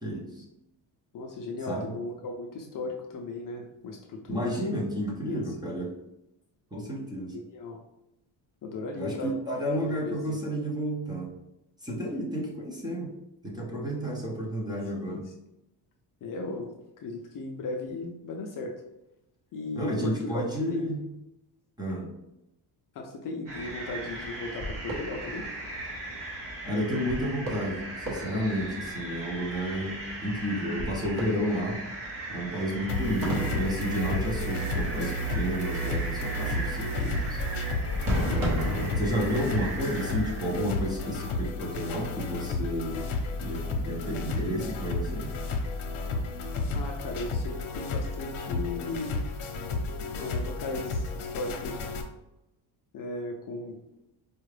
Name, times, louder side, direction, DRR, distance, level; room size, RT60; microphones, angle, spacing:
voice 1, 0.0-0.4 1.7-1.9 4.3-5.9 6.7-7.3 9.0-11.3 11.8-13.1 13.4-15.2 19.7-21.1 21.8-22.1 26.7-31.8 32.3-37.4 38.2-43.1 43.4-45.4, equal, 10° right, -3 dB, 0.6 m, -31 dB
voice 2, 1.1-4.7 5.3-5.5 7.3-7.8 8.6-9.3 10.0-10.4 15.0-15.3 16.2-16.7 17.0-18.7 19.5-20.9 22.9-25.4 46.7-49.2 50.1-51.9 52.9-53.8, left 2 dB, 45° left, 1 dB, 0.5 m, -36 dB
sound 1, 23.5-41.1, equal, 45° right, 1.2 m, -35 dB
sound 2, 32.9-52.0, left 2 dB, 85° left, 0.8 m, -32 dB
4.5 x 2.4 x 3.2 m, 0.91 s
cardioid pair, 165°, 47 cm